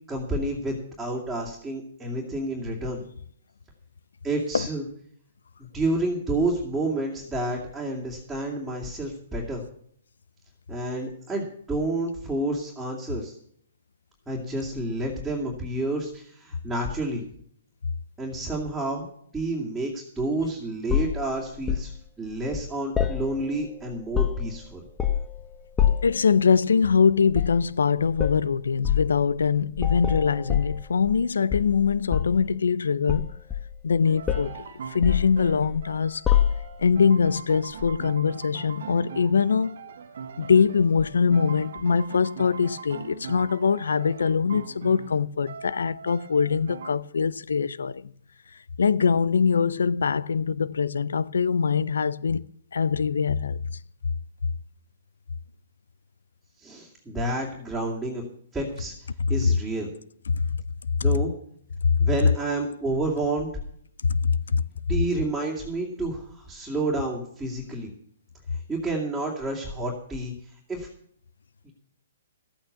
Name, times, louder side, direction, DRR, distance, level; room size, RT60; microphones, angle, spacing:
voice 1, 0.1-3.0 4.2-4.8 5.6-9.6 10.7-13.4 14.3-17.2 18.2-19.1 19.3-24.8 56.6-58.2 58.5-58.9 59.3-59.9 61.0-61.3 62.0-63.5 64.9-67.9 68.5-70.9 71.6-71.7, right 2 dB, 5° right, 2.8 m, -29 dB
sound 1, 20.9-21.9 23.0-23.7 24.0-24.6 25.0-25.4 25.8-26.2 27.3-27.6 28.2-28.4 28.8-29.1 29.8-31.2 31.5-32.4 33.1-33.9 34.3-34.6 35.0-35.8 36.3-36.9 37.8-38.0, left 10 dB, 15° left, 1.1 m, -25 dB
voice 2, 26.0-33.3 33.8-36.2 36.8-39.8 40.4-48.1 48.8-52.4 52.7-53.6 60.3-60.4 62.0-62.1 64.0-64.6, left 6 dB, 85° left, 0.5 m, -23 dB
sound 2, 34.0-46.9, right 6 dB, 70° right, 1.4 m, -41 dB
14.0 x 8.8 x 6.9 m
hypercardioid pair, 135°, 0 cm